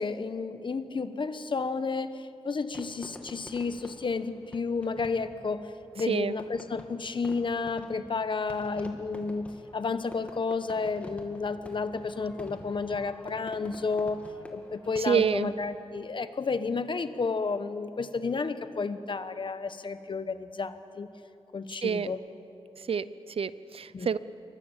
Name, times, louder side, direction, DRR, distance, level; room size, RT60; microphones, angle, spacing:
voice 1, 0.0-14.2 14.5-21.1 21.5-22.2 23.9-24.1, left 4 dB, 50° left, 11 dB, 1.1 m, -31 dB
Fireworks, 2.7-15.4, left 1 dB, 10° left, 2.3 m, -48 dB
voice 2, 15.0-15.5 21.8-22.1 22.8-24.2, right 6 dB, 65° right, 16 dB, 0.7 m, -28 dB
28.0 x 24.0 x 7.3 m, 2.9 s
wide cardioid pair, 130°, 10 cm